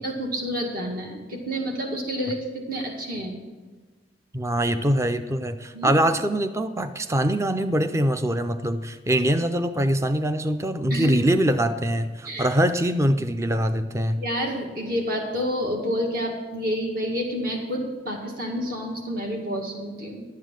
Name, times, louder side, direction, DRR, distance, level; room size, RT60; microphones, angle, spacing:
voice 1, 0.0-3.4 5.7-5.9 10.9-11.1 12.2-12.5 14.2-20.2, equal, 60° right, 0 dB, 2.1 m, -29 dB
voice 2, 4.3-14.2, right 1 dB, 15° right, 10 dB, 0.5 m, -23 dB
11.5 x 8.4 x 6.3 m, 1.3 s
head